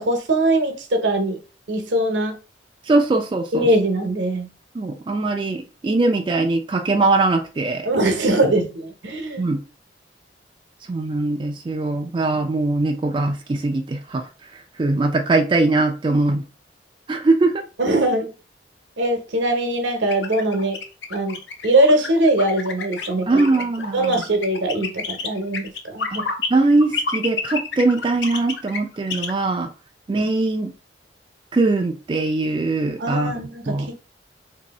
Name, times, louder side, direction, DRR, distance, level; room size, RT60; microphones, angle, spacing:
voice 1, 0.0-1.4 1.7-2.4 3.5-4.5 7.8-9.5 17.8-18.3 19.0-20.8 21.1-21.4 21.6-23.4 23.9-26.3 33.0-33.9, right 1 dB, 80° right, 0.8 m, -21 dB
voice 2, 2.9-3.7 4.7-7.9 9.4-9.6 10.9-14.3 14.5-16.4 17.1-17.6 23.3-24.2 26.1-26.2 26.5-29.7 30.1-30.7 31.5-33.3 33.7-33.9, right 2 dB, 25° right, 0.3 m, -21 dB
sound 1, 20.1-26.5 26.8-29.3, left 5 dB, 85° left, 0.6 m, -29 dB
2.7 x 2.6 x 4.1 m
head